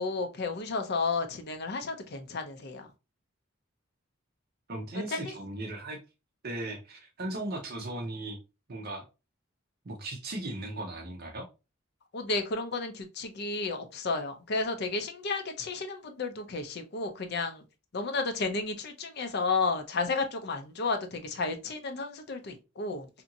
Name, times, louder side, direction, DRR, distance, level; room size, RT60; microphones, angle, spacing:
voice 1, 0.0-2.9 4.9-5.3 12.1-17.6 17.9-23.1, left 3 dB, 55° left, 0.5 m, -32 dB
voice 2, 4.7-6.0 6.4-8.4 8.7-9.1 9.8-11.5, right 1 dB, 50° right, 0.7 m, -37 dB
2.8 x 2.6 x 2.6 m
head